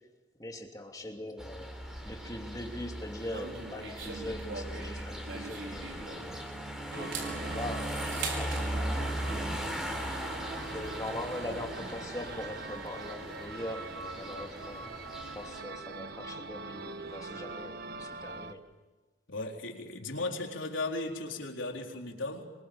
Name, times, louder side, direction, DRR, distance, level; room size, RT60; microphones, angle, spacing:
voice 1, 0.4-1.8 2.0-6.4 6.9-9.2 10.7-14.9 15.3-18.6, left 1 dB, 20° left, 2 dB, 3.0 m, -42 dB
sound 1, 1.4-15.6, equal, 5° right, 3.8 m, -38 dB
sound 2, 3.3-6.5 6.9-8.7, right 4 dB, 75° right, 5.5 m, -41 dB
sound 3, 6.9-18.5, right 3 dB, 55° right, 1.3 m, -43 dB
voice 2, 19.3-22.5, left 2 dB, 80° left, 2 dB, 4.1 m, -36 dB
26.5 x 23.5 x 8.8 m, 1.2 s
head